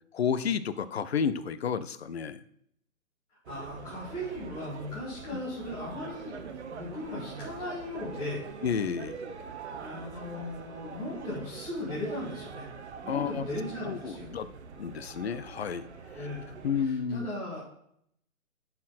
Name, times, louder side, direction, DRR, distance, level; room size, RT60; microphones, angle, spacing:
voice 1, 0.1-2.4 5.3-5.4 8.6-9.2 13.1-13.4 13.8-14.5 14.8-15.9 16.6-17.3, left 7 dB, 50° left, 14 dB, 0.5 m, -31 dB
voice 2, 3.5-6.4 6.7-8.4 9.8-12.6 13.0-14.3 16.1-16.5 16.8-17.6, left 1 dB, 10° left, -10 dB, 1.8 m, -37 dB
sound 1, 3.5-16.8, right 5 dB, 50° right, 0.8 m, -44 dB
10.0 x 4.4 x 4.1 m, 0.71 s
hypercardioid pair, 165°, 43 cm